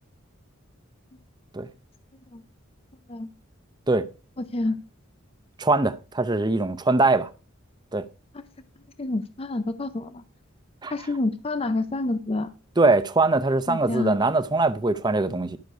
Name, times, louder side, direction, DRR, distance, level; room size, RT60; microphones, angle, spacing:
voice 1, 5.6-7.3 7.9-8.0 10.8-10.9 12.8-15.6, right 3 dB, 20° right, 0.7 m, -22 dB
voice 2, 9.0-10.2 10.9-12.5 13.7-14.2, left 2 dB, 30° left, 0.5 m, -28 dB
11.5 x 6.6 x 4.7 m
head